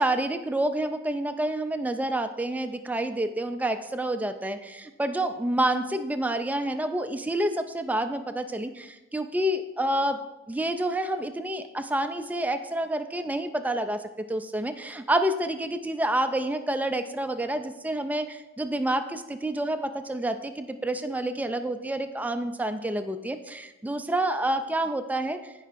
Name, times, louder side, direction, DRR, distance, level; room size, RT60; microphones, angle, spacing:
voice 1, 0.0-10.2 10.5-25.5, right 1 dB, 10° right, 8 dB, 0.3 m, -28 dB
15.0 x 5.4 x 2.5 m, 1.1 s
head